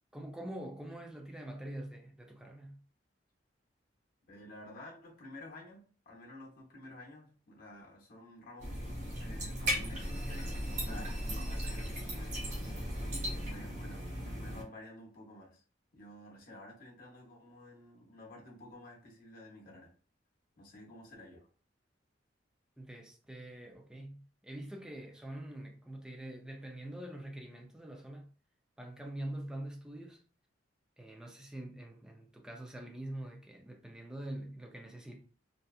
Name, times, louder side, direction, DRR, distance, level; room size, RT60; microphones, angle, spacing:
voice 1, 0.1-2.8 22.8-28.3 28.8-30.2 31.0-35.2, right 1 dB, 5° right, 0.4 m, -44 dB
voice 2, 4.3-8.7 9.2-12.6 13.0-15.6 15.9-19.9 20.6-21.5, left 1 dB, 50° left, 0.8 m, -52 dB
sound 1, 8.6-14.6, equal, 40° right, 0.9 m, -37 dB
2.7 x 2.3 x 2.3 m
head